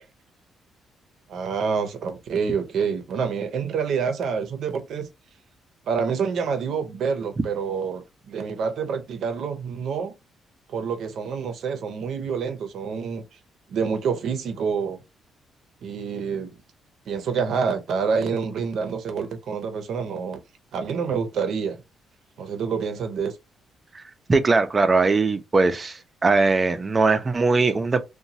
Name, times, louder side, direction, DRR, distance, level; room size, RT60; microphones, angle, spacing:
voice 1, 1.3-5.1 5.9-10.1 10.7-13.2 13.7-15.0 15.8-16.6 17.1-20.4 20.7-21.8 22.4-23.4, right 6 dB, 70° right, 0.7 m, -27 dB
voice 2, 24.3-28.0, right 3 dB, 30° right, 0.5 m, -20 dB
2.9 x 2.2 x 2.7 m
cardioid pair, 90°, 0 cm